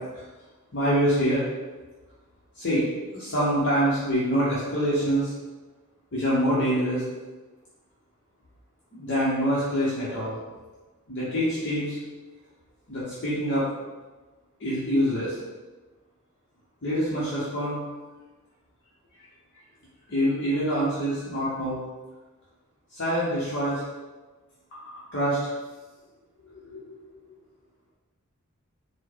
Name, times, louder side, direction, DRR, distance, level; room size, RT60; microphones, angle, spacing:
voice 1, 0.7-1.4 2.5-2.8 3.1-5.3 6.1-7.1 8.9-10.4 11.1-12.0 12.9-13.7 14.6-15.4 16.8-17.8 20.1-21.8 22.9-23.8 25.1-25.6 26.6-26.9, equal, 60° left, -9 dB, 1.0 m, -25 dB
4.3 x 2.2 x 4.6 m, 1.2 s
head